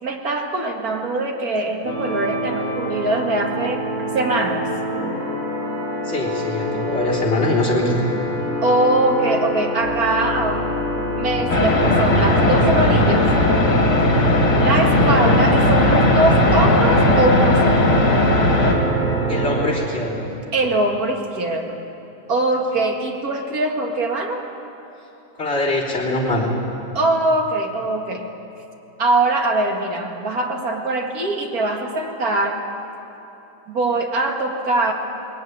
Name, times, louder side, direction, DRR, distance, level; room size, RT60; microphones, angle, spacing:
voice 1, 0.0-3.9 4.1-4.6 8.6-10.7 11.2-13.3 14.5-18.0 20.5-21.8 22.3-24.4 26.9-28.3 29.0-32.7 33.7-34.9, right 2 dB, 55° right, 2 dB, 2.4 m, -22 dB
sound 1, 1.8-19.6, right 1 dB, 5° left, 7.1 m, -25 dB
voice 2, 6.1-8.1 15.0-15.1 19.3-20.3 25.4-26.5, left 2 dB, 35° left, -5 dB, 4.0 m, -23 dB
sound 2, 11.5-18.8, left 2 dB, 60° left, 3.3 m, -17 dB
20.5 x 18.5 x 9.4 m, 3.0 s
omnidirectional pair, 2.0 m